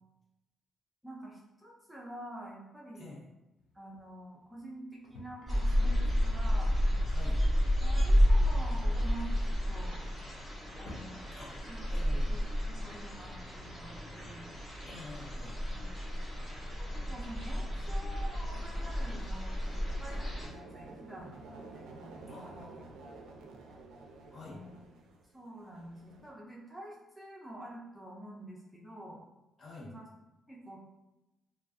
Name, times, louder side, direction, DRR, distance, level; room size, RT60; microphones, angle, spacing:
voice 1, 1.0-3.2 3.7-6.8 7.8-10.0 10.8-11.3 11.7-14.5 16.8-22.6 24.3-24.8 25.3-29.2 29.8-30.1 30.5-30.8, right 1 dB, 5° right, -4 dB, 0.5 m, -48 dB
sound 1, 3.6-13.3, left 1 dB, 85° left, 0.5 m, -56 dB
sound 2, 5.5-20.5, equal, 25° left, 1.0 m, -31 dB
voice 2, 7.1-7.4 11.3-11.5 11.9-12.3 14.8-15.6 22.3-22.9 24.3-24.6 29.6-29.9, left 3 dB, 50° left, -5 dB, 0.8 m, -48 dB
sound 3, 18.5-26.3, right 3 dB, 90° right, 0.3 m, -52 dB
2.4 x 2.3 x 2.4 m, 0.95 s
cardioid pair, 90°, 0 cm